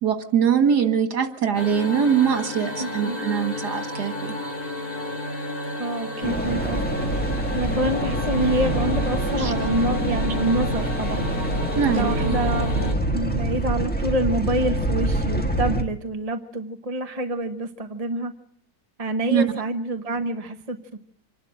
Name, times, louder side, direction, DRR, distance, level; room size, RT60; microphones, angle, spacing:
voice 1, 0.0-4.4 9.4-9.5 11.8-12.4 19.3-19.4, right 8 dB, 85° right, 8 dB, 2.4 m, -22 dB
sound 1, 1.5-12.9, left 1 dB, 65° left, 4.0 m, -30 dB
voice 2, 2.8-3.2 5.8-6.8 7.5-11.3 11.9-18.3 19.0-21.0, right 1 dB, 25° right, 6 dB, 1.0 m, -27 dB
sound 2, 6.2-15.8, right 1 dB, 5° left, 1.4 m, -26 dB
26.0 x 11.5 x 8.9 m, 0.66 s
omnidirectional pair, 1.7 m